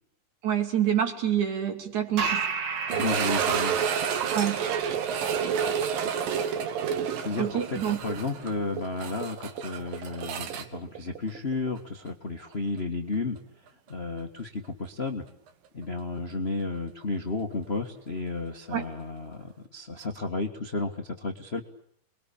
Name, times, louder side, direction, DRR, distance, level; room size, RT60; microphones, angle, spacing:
voice 1, 0.4-2.4 4.3-4.6 7.4-8.0 18.7-18.8, right 9 dB, 60° right, 5 dB, 4.1 m, -27 dB
sound 1, 2.2-9.2, right 5 dB, 45° right, 2.4 m, -36 dB
voice 2, 2.9-3.8 7.2-13.4 13.9-15.2 15.7-21.6, left 3 dB, 40° left, 5 dB, 0.9 m, -33 dB
sound 2, 2.9-11.8 12.1-12.2 12.8-12.9 15.5-15.6, right 7 dB, 85° right, 3.4 m, -30 dB
28.5 x 22.0 x 8.5 m, 0.70 s
omnidirectional pair, 4.0 m